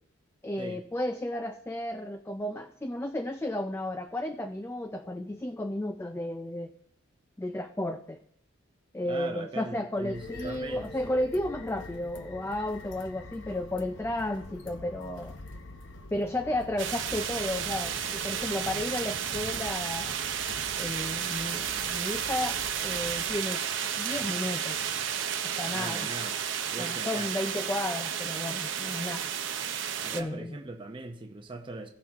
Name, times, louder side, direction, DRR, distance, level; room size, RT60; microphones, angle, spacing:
voice 1, 0.4-6.7 7.4-8.2 8.9-15.4 16.1-20.2 20.8-23.6 24.0-24.8 25.4-26.1 26.8-29.3 30.1-30.6, left 1 dB, 10° left, 6 dB, 0.3 m, -33 dB
voice 2, 9.0-10.9 25.7-26.4 26.7-27.3 30.0-31.9, right 2 dB, 25° right, 3 dB, 0.7 m, -40 dB
sound 1, 10.0-23.4, left 2 dB, 65° left, 0.9 m, -45 dB
sound 2, 16.8-30.2, right 8 dB, 65° right, 0.8 m, -32 dB
16.5 x 6.0 x 3.5 m, 0.67 s
head